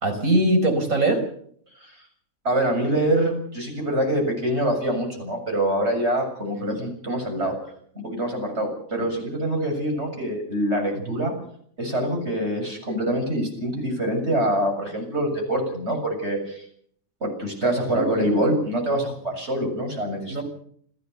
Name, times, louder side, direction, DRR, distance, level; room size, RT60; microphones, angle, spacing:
voice 1, 0.0-1.2 7.4-7.5 9.0-9.1 10.9-11.2 17.9-18.2 20.3-20.4, right 1 dB, 85° right, 5 dB, 5.2 m, -22 dB
voice 2, 2.4-7.6 8.0-11.3 11.8-16.6 17.2-20.4, right 1 dB, 50° right, 3 dB, 7.6 m, -25 dB
29.0 x 14.0 x 7.0 m, 0.62 s
omnidirectional pair, 1.4 m